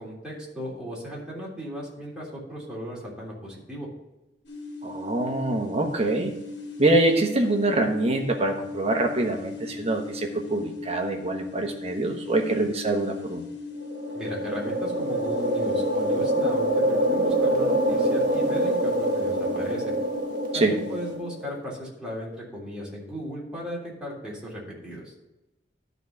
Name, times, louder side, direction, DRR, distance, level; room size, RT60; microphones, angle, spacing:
voice 1, 0.0-3.9 14.1-19.9 20.5-25.1, equal, 5° right, -6 dB, 3.3 m, -36 dB
sound 1, 4.4-21.1, left 4 dB, 75° left, 2.1 m, -38 dB
voice 2, 4.8-6.3 6.8-13.4 20.5-20.8, right 2 dB, 35° right, 4 dB, 1.2 m, -25 dB
sound 2, 13.8-21.5, right 1 dB, 50° right, 1.7 m, -25 dB
12.0 x 4.1 x 5.9 m, 0.95 s
head